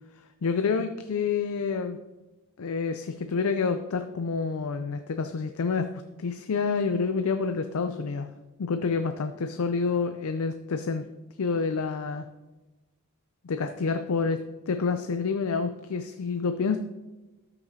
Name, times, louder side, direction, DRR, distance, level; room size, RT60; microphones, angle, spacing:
voice 1, 0.4-2.0 2.6-5.9 6.2-8.3 8.6-11.0 11.4-12.3 13.4-16.8, left 5 dB, 75° left, 8 dB, 0.5 m, -28 dB
13.0 x 6.9 x 2.8 m, 1.1 s
head